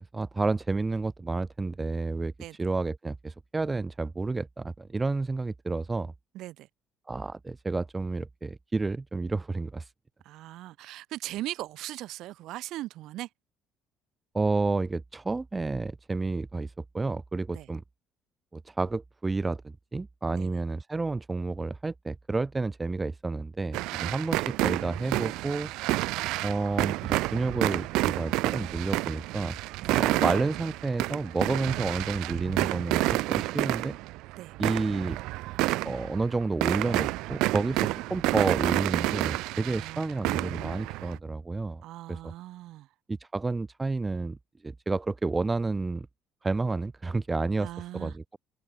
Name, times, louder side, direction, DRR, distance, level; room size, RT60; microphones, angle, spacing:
voice 1, 0.1-6.1 7.1-9.9 14.3-17.8 18.5-25.7 26.4-29.6 29.9-33.9 34.6-35.2 35.8-41.8 42.1-42.2 43.1-44.4 44.6-46.1 46.4-48.4, right 3 dB, 15° right, 0.5 m, -30 dB
voice 2, 6.3-6.7 10.2-13.3 17.5-17.7 20.3-20.6 24.0-24.2 29.8-30.0 34.3-34.5 39.7-40.1 41.8-42.9 47.6-48.1, right 15 dB, 65° right, 2.9 m, -39 dB
sound 1, 23.7-41.2, right 20 dB, 80° right, 0.9 m, -29 dB
cardioid pair, 150°, 0 cm